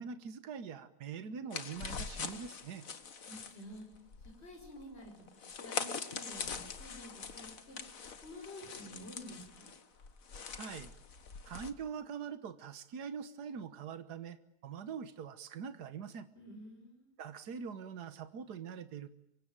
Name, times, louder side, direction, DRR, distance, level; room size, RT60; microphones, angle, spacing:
voice 1, 0.0-2.8 10.6-10.9 11.5-14.4 14.6-16.3 17.2-19.1, right 6 dB, 80° right, 11 dB, 1.8 m, -43 dB
sound 1, 1.5-11.7, left 5 dB, 60° left, 1.9 m, -43 dB
voice 2, 3.2-3.9 4.4-7.8 8.2-9.7 16.3-17.1, left 1 dB, 40° left, 2 dB, 5.8 m, -50 dB
25.0 x 23.5 x 8.9 m, 0.77 s
omnidirectional pair, 1.7 m